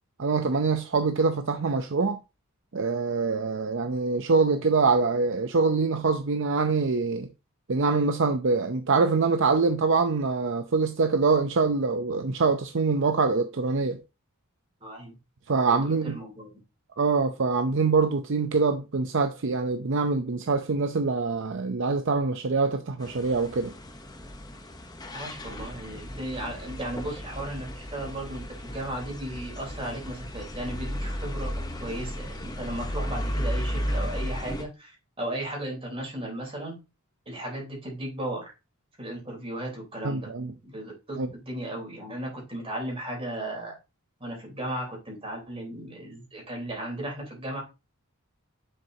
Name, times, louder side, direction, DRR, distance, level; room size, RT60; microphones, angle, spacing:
voice 1, 0.2-2.2 2.7-7.3 7.7-14.0 15.5-16.2 17.0-23.7 40.0-40.5 41.2-41.3, right 4 dB, 60° right, 0.6 m, -24 dB
voice 2, 14.8-15.2 15.8-16.5 25.1-31.5 31.8-36.8 37.3-38.5 39.0-40.3 40.6-43.8 44.2-47.6, right 1 dB, 25° right, 3.6 m, -35 dB
sound 1, 23.0-34.6, equal, 20° left, 0.8 m, -34 dB
7.2 x 6.6 x 2.7 m
head